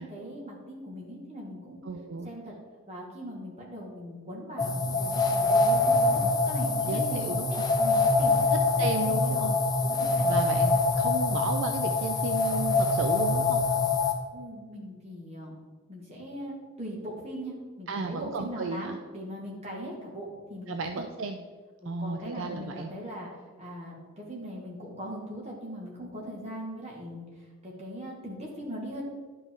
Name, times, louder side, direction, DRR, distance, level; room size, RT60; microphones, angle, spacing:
voice 1, 0.0-1.8 2.2-2.5 2.9-7.4 7.8-8.4 8.8-9.5 9.8-10.3 14.3-15.6 15.9-21.1 21.8-23.3 23.6-27.2 27.6-29.0, equal, 30° right, -2 dB, 1.7 m, -40 dB
voice 2, 1.8-2.3 6.2-6.3 6.8-7.5 8.5-9.6 10.2-13.6 17.9-19.0 20.7-21.4 21.9-22.9, right 4 dB, 60° right, 6 dB, 0.4 m, -34 dB
sound 1, 4.6-14.1, left 3 dB, 20° left, 0.6 m, -25 dB
11.0 x 5.2 x 3.7 m, 1.5 s
head